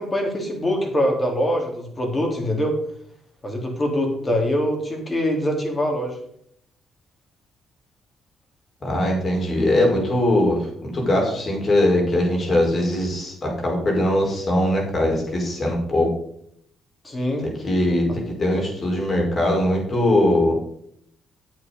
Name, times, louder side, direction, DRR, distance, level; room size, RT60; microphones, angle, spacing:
voice 1, 0.0-2.8 3.4-6.2 17.0-17.5 18.1-18.2, equal, 25° left, 2 dB, 3.5 m, -23 dB
voice 2, 8.8-10.6 10.9-16.1 17.4-18.1 18.4-20.5, left 1 dB, 40° left, -1 dB, 5.1 m, -21 dB
9.2 x 8.3 x 5.3 m, 0.69 s
cardioid pair, 90°, 0 cm